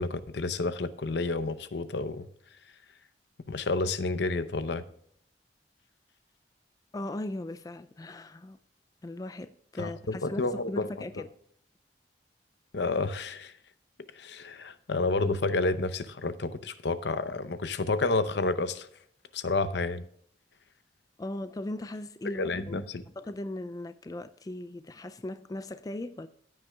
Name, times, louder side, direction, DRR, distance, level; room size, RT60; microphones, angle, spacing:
voice 1, 0.0-2.3 3.5-4.8 9.8-10.9 12.7-13.5 14.2-18.9 19.3-20.1 22.3-23.0, left 3 dB, 75° left, 0.7 m, -30 dB
voice 2, 6.9-8.6 9.0-11.3 21.2-22.8 23.2-26.3, left 1 dB, 20° left, 0.3 m, -38 dB
15.0 x 9.4 x 2.3 m
head